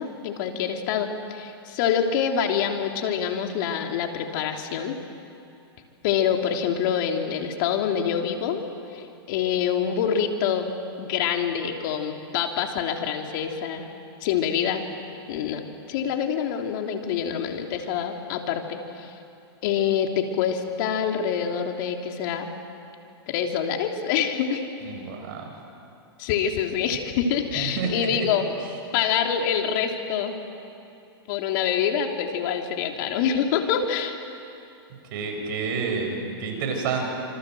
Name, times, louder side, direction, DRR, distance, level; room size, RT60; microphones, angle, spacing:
voice 1, 0.0-5.0 6.0-8.6 8.9-10.7 11.0-13.9 14.2-14.9 15.3-19.1 19.6-22.5 23.3-24.6 26.2-28.5 28.9-30.4 31.3-34.2, left 8 dB, 55° left, 3 dB, 3.3 m, -26 dB
voice 2, 24.8-25.5 27.6-28.3 35.1-37.1, right 5 dB, 55° right, 3 dB, 6.9 m, -29 dB
27.0 x 26.0 x 7.9 m, 2.7 s
hypercardioid pair, 125°, 13 cm